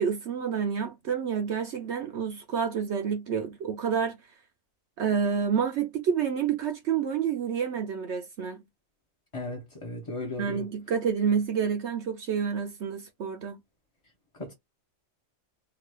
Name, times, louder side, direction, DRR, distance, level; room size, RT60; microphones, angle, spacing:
voice 1, 0.0-4.2 5.0-8.6 10.4-13.6, right 7 dB, 65° right, 0.8 m, -28 dB
voice 2, 9.3-10.6 14.3-14.5, left 2 dB, 30° left, 0.6 m, -36 dB
2.9 x 2.4 x 3.2 m
omnidirectional pair, 1.4 m